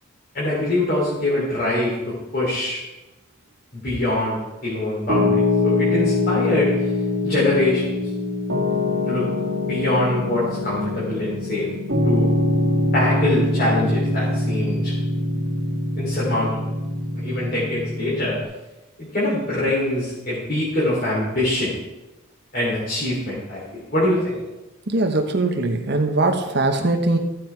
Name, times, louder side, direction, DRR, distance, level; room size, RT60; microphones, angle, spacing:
voice 1, 0.3-2.8 3.7-6.7 7.2-7.9 9.1-9.3 9.7-11.7 12.0-12.3 12.9-14.9 16.0-16.5 17.1-18.4 19.1-21.7 22.5-24.4, left 1 dB, 45° left, -7 dB, 3.4 m, -23 dB
Piano, 5.1-18.4, left 2 dB, 75° right, 2.0 m, -23 dB
voice 2, 24.9-27.2, right 2 dB, 50° right, 4 dB, 1.1 m, -21 dB
14.0 x 7.7 x 4.6 m, 1.0 s
head